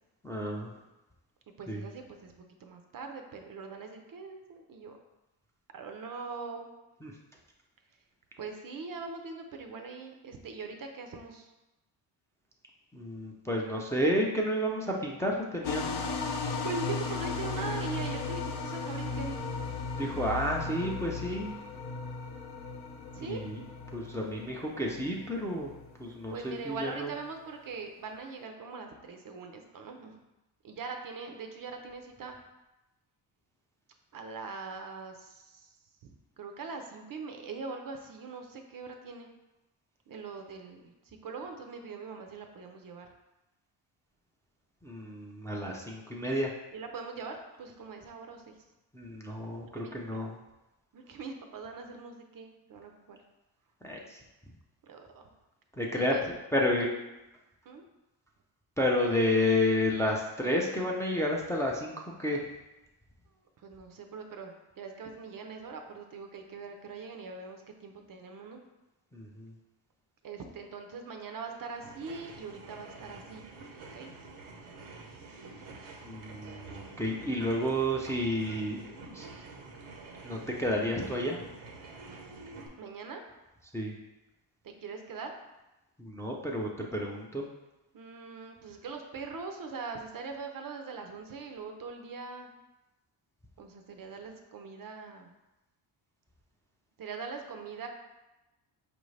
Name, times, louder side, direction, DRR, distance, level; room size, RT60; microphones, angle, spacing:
voice 1, 0.2-0.7 1.7-1.8 7.0-7.1 12.9-16.1 20.0-21.5 23.2-23.6 23.9-25.7 26.0-27.1 44.8-46.5 48.9-50.4 53.8-54.2 55.8-56.2 56.5-56.9 58.8-62.5 69.1-69.5 76.0-78.8 79.1-79.3 80.2-81.4 83.7-83.9 86.0-87.5, left 1 dB, 5° left, -2 dB, 0.4 m, -31 dB
voice 2, 1.6-5.0 5.7-6.7 8.4-11.5 16.4-19.5 23.1-23.4 26.3-30.2 30.6-32.4 34.1-35.7 36.0-39.3 40.1-43.1 46.7-48.6 49.7-50.2 50.9-53.2 54.8-55.3 55.9-56.2 56.8-56.9 57.7-57.8 63.6-68.6 70.2-73.4 73.8-74.1 82.8-83.2 84.6-85.3 87.9-92.5 93.6-95.3 97.0-97.9, right 4 dB, 45° right, 5 dB, 0.5 m, -42 dB
sound 1, 15.6-26.5, left 4 dB, 55° left, 0.6 m, -36 dB
sound 2, 71.7-82.7, right 3 dB, 85° right, 0.8 m, -48 dB
4.7 x 2.6 x 3.2 m, 1.0 s
cardioid pair, 85°, 47 cm